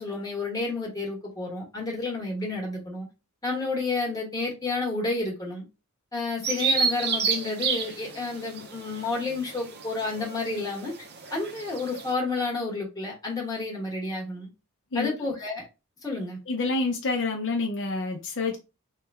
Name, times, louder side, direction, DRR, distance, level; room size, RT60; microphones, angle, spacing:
voice 1, 0.0-3.1 3.4-5.6 6.1-10.9 11.3-14.5 14.9-15.7 16.0-16.4, left 3 dB, 15° left, 1.1 m, -30 dB
Bird vocalization bird call bird song, 6.4-12.1, right 5 dB, 45° right, 0.5 m, -30 dB
voice 2, 16.5-18.6, left 3 dB, 55° left, 0.6 m, -28 dB
3.2 x 2.1 x 3.4 m
head